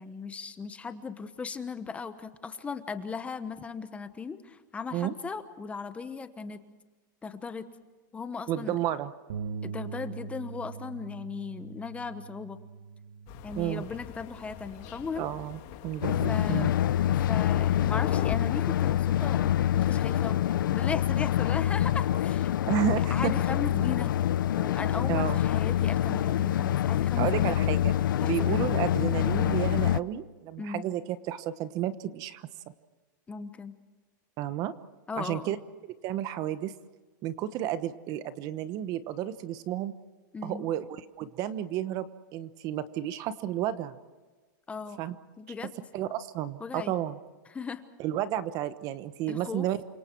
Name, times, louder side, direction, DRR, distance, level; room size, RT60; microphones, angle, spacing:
voice 1, 0.0-6.6 7.2-7.6 8.1-8.7 9.6-12.6 13.4-15.3 16.3-16.7 17.1-19.5 19.7-20.4 20.7-22.7 23.1-24.1 24.5-27.6 28.2-28.7 30.6-30.8 33.3-33.7 35.1-35.6 40.3-40.7 44.7-45.0 45.4-45.7 46.6-46.9 47.5-47.8 49.3-49.7, left 5 dB, 10° left, 10 dB, 1.1 m, -37 dB
voice 2, 8.5-9.1 13.6-13.8 15.2-16.7 22.7-23.3 25.1-25.4 27.2-32.5 34.4-34.7 35.2-35.6 36.0-36.7 37.2-39.9 40.4-43.9 45.0-45.1 45.9-47.2 48.0-49.8, right 11 dB, 35° right, 13 dB, 1.1 m, -32 dB
Bass guitar, 9.3-15.5, right 6 dB, 85° right, 2.5 m, -42 dB
Thunder, 13.3-18.4, left 14 dB, 45° left, 1.8 m, -41 dB
sound 1, 16.0-30.0, left 11 dB, 90° left, 0.6 m, -26 dB
29.0 x 25.5 x 4.6 m, 1.3 s
supercardioid pair, 150°, 11 cm